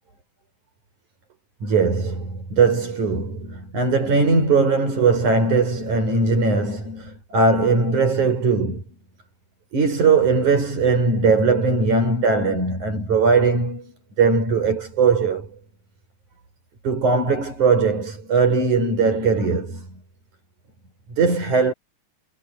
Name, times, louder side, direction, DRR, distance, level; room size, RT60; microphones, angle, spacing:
voice 1, 1.6-8.8 9.7-13.9 14.2-15.5 16.8-19.9 21.1-21.7, right 4 dB, 80° right, 8.0 m, -20 dB
omnidirectional pair, 3.4 m